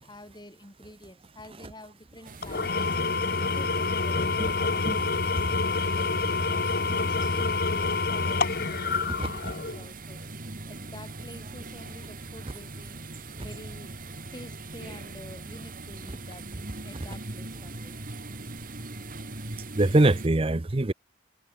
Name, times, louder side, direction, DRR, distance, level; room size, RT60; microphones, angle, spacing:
voice 1, 0.0-2.9 3.3-5.0 5.3-6.8 7.3-10.2 10.7-12.9 13.4-13.9 14.3-16.4 16.8-18.0 18.2-18.4, left 1 dB, 25° left, 3.0 m, -48 dB
sound 1, 2.2-20.3, right 2 dB, 45° right, 2.7 m, -41 dB
Engine / Tools, 2.4-9.9, left 3 dB, 50° left, 1.5 m, -27 dB
voice 2, 9.2-9.5 19.8-20.9, right 2 dB, 30° right, 0.7 m, -23 dB
head